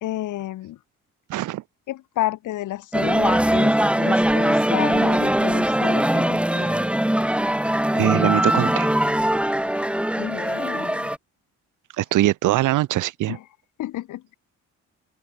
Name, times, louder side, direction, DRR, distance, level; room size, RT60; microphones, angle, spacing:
voice 1, 0.0-0.8 1.9-6.8 10.2-11.1 13.3-13.4 13.8-14.3, left 14 dB, 80° left, 2.2 m, -31 dB
voice 2, 1.3-1.6 7.9-8.9 12.0-13.4, right 15 dB, 85° right, 1.6 m, -22 dB
sound 1, 2.9-11.2, right 1 dB, 5° right, 3.1 m, -21 dB
open air
cardioid pair, 90°, 30 cm